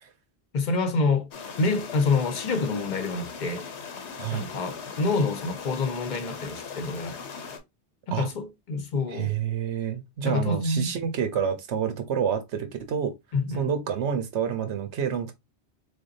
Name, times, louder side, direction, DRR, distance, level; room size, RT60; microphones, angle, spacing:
voice 1, 0.5-1.3 1.6-3.7 4.3-7.2 8.1-9.4 10.2-10.9 13.3-13.7, left 3 dB, 50° left, 0.8 m, -27 dB
sound 1, 1.3-7.6, left 5 dB, 80° left, 1.1 m, -39 dB
voice 2, 4.2-4.5 8.1-8.3 9.1-13.1 13.5-15.3, right 8 dB, 90° right, 1.1 m, -28 dB
3.8 x 3.5 x 2.6 m
omnidirectional pair, 1.1 m